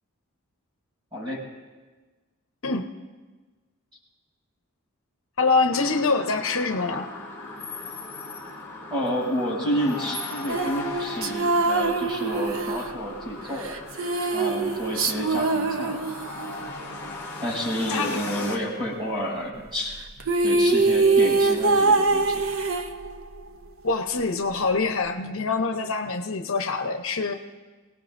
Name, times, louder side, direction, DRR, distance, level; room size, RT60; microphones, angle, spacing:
voice 1, 1.1-1.4 8.9-13.7 14.2-16.1 17.4-20.0 20.4-22.4, equal, 20° right, -5 dB, 6.9 m, -30 dB
voice 2, 5.4-7.1 17.9-18.2 23.8-27.3, left 4 dB, 70° left, 4 dB, 1.0 m, -25 dB
sound 1, 5.7-18.6, left 2 dB, 10° left, 2.8 m, -38 dB
sound 2, 10.5-16.6 19.9-20.0 20.2-23.4, right 3 dB, 70° right, 0.8 m, -23 dB
29.5 x 18.0 x 2.7 m, 1.3 s
head